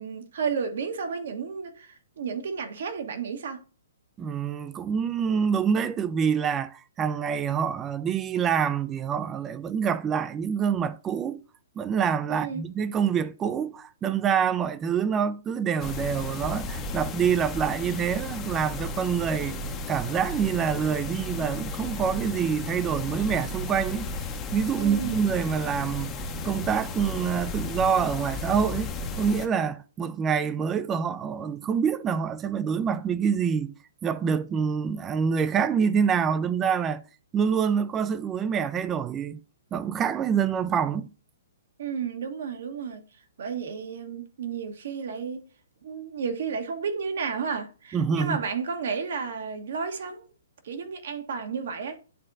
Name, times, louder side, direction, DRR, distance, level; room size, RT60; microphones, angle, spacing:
voice 1, 0.0-3.6 12.3-12.6 24.8-25.3 41.8-43.0 43.4-45.4 45.8-50.2 50.6-52.0, right 6 dB, 65° right, 1.2 m, -32 dB
voice 2, 4.2-11.4 11.8-19.6 19.9-24.1 24.5-26.1 26.4-33.7 34.0-37.0 37.3-39.4 39.7-41.1 47.9-48.4, right 7 dB, 20° right, 0.4 m, -26 dB
sound 1, 15.8-29.5, left 3 dB, 20° left, 0.8 m, -34 dB
11.0 x 3.7 x 2.5 m
hypercardioid pair, 145°, 0 cm